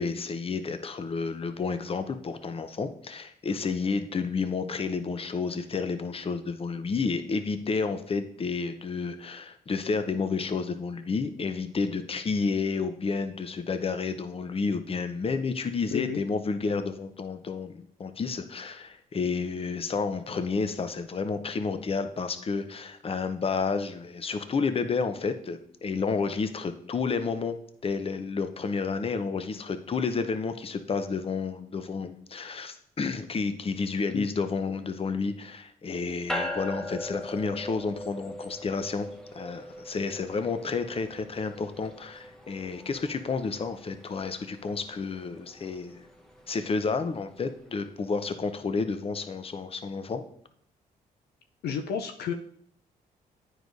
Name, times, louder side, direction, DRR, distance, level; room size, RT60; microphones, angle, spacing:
voice 1, 0.0-27.6 27.8-39.1 39.3-46.0 46.5-50.2, left 4 dB, 35° left, 9 dB, 0.7 m, -30 dB
sound 1, 36.3-47.9, left 1 dB, 5° left, 1.0 m, -41 dB
voice 2, 51.6-52.3, left 7 dB, 75° left, 5 dB, 0.5 m, -31 dB
9.0 x 4.8 x 2.6 m, 0.66 s
supercardioid pair, 60°, 17 cm